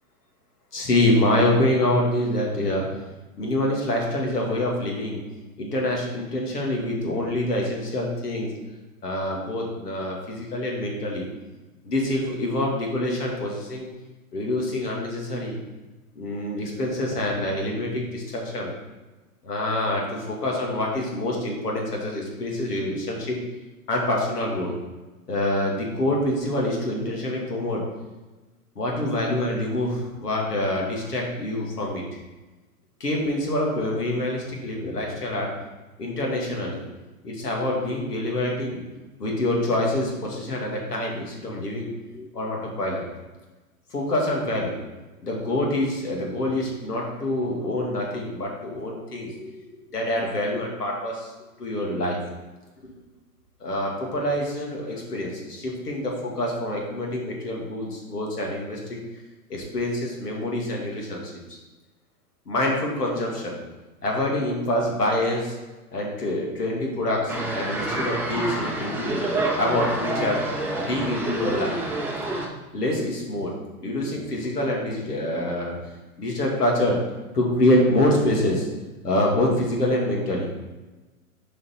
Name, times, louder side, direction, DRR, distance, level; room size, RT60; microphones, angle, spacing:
voice 1, 0.7-2.9 3.4-5.2 5.6-8.5 9.0-11.3 11.8-13.9 14.3-15.6 16.2-18.7 19.4-23.4 23.9-24.7 25.3-27.8 28.8-32.0 33.0-35.5 36.0-36.8 37.2-38.8 39.2-43.1 43.9-44.7 45.2-51.3 51.6-52.2 52.8-52.9 53.6-59.0 59.5-61.3 62.5-63.6 64.0-65.6 65.9-69.1 69.6-70.4 70.7-71.8 72.7-73.5 73.8-75.8 76.2-77.0 77.3-78.7 79.0-80.5, left 1 dB, 90° left, -1 dB, 2.4 m, -26 dB
sound 1, 67.3-72.5, right 2 dB, 5° right, 0.8 m, -28 dB
7.4 x 5.0 x 4.5 m, 1.2 s
hypercardioid pair, 130°, 46 cm